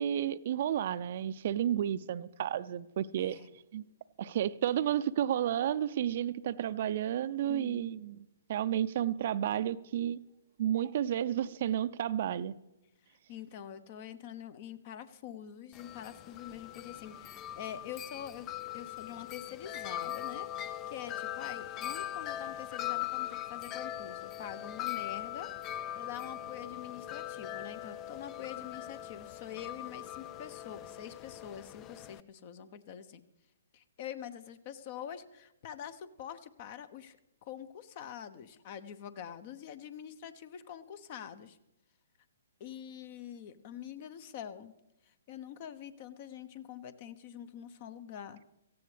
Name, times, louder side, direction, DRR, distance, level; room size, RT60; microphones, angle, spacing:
voice 1, 0.0-3.4 3.7-3.8 4.2-8.2 8.5-10.2 10.6-12.5, right 10 dB, 50° right, 0.5 m, -31 dB
voice 2, 3.2-3.5 7.4-8.0 13.3-33.2 33.7-37.2 37.4-41.6 42.6-44.7 45.1-48.4, left 9 dB, 40° left, 0.9 m, -45 dB
Wind chime, 15.7-32.2, left 12 dB, 25° left, 0.4 m, -40 dB
17.5 x 14.5 x 3.4 m
hypercardioid pair, 130°, 0 cm